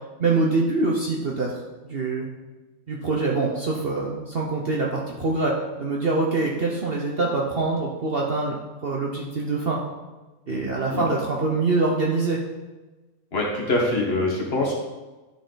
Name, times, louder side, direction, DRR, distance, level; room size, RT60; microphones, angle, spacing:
voice 1, 0.2-1.5 1.8-2.3 2.9-5.5 5.8-8.5 8.8-9.8 10.5-12.4, right 3 dB, 45° right, -2 dB, 0.9 m, -24 dB
voice 2, 10.5-11.1 13.3-14.7, left 2 dB, 45° left, -2 dB, 1.6 m, -25 dB
10.0 x 4.4 x 3.9 m, 1.2 s
omnidirectional pair, 1.6 m